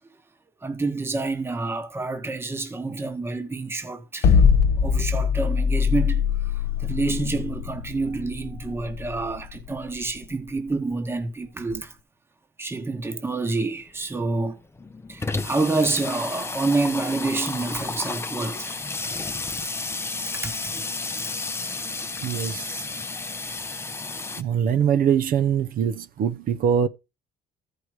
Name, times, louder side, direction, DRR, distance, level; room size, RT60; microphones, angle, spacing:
voice 1, 0.6-4.4 4.8-12.0 12.6-14.6 15.1-18.8 20.3-20.9 21.2-21.3, right 3 dB, 15° right, 1.1 m, -28 dB
sound 1, 4.2-10.4, left 6 dB, 65° left, 1.1 m, -22 dB
Water tap faucet / Sink (filling or washing), 13.8-13.9 14.2-14.3 14.5-24.4, left 3 dB, 15° left, 0.6 m, -32 dB
voice 2, 22.2-22.8 24.4-26.9, right 8 dB, 55° right, 0.7 m, -23 dB
13.5 x 4.9 x 4.7 m
cardioid pair, 110°, 17 cm